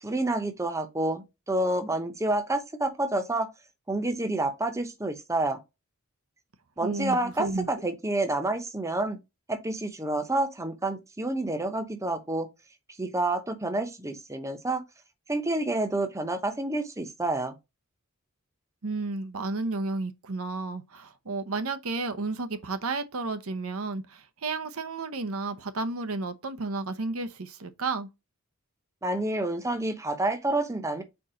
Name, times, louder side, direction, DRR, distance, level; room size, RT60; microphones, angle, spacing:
voice 1, 0.0-3.5 3.9-5.6 6.8-9.2 9.5-12.5 13.0-14.8 15.3-17.5 29.0-31.0, right 2 dB, 15° right, 0.9 m, -29 dB
voice 2, 6.8-7.7 18.8-28.1, right 3 dB, 80° right, 0.9 m, -32 dB
4.5 x 4.2 x 5.0 m
head